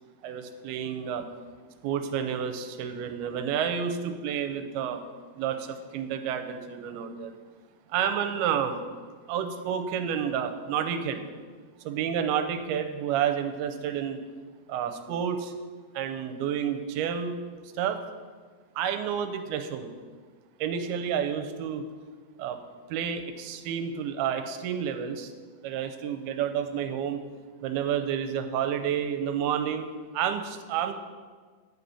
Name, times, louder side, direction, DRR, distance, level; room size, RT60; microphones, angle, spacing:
voice 1, 0.2-1.2 1.8-5.0 5.4-7.3 7.9-8.8 9.3-11.2 11.9-14.2 14.7-15.5 15.9-17.4 17.8-18.0 18.8-19.9 20.6-21.8 22.4-22.6 22.9-25.3 25.6-27.2 27.6-29.9 30.1-30.9, right 8 dB, 90° right, 7 dB, 2.6 m, -30 dB
10.5 x 5.3 x 8.4 m, 1.5 s
omnidirectional pair, 4.5 m